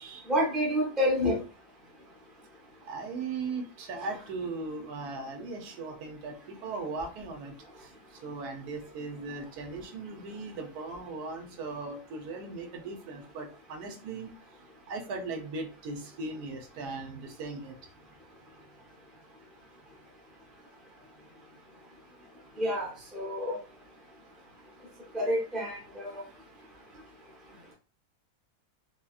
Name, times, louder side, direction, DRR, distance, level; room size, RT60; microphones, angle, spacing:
voice 1, 0.3-1.4 22.6-23.6 25.1-26.2, equal, ahead, -2 dB, 0.4 m, -28 dB
voice 2, 2.9-7.5 7.8-7.9 8.2-14.3 14.9-17.7, right 3 dB, 85° right, 4 dB, 1.2 m, -38 dB
2.8 x 2.7 x 2.3 m, 0.36 s
omnidirectional pair, 1.6 m